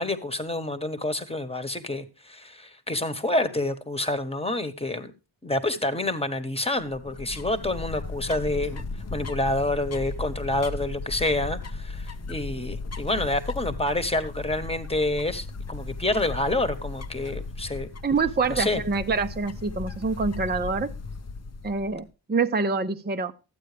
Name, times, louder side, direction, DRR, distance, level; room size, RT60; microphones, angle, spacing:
voice 1, 0.0-5.1 5.4-8.8 9.1-17.9 18.5-18.8, left 2 dB, 15° left, 1.3 m, -28 dB
sound 1, 6.8-22.0, left 3 dB, 35° left, 0.7 m, -36 dB
voice 2, 18.0-20.9 21.6-23.3, right 4 dB, 20° right, 0.7 m, -26 dB
13.5 x 9.0 x 3.4 m
wide cardioid pair, 135°, 46 cm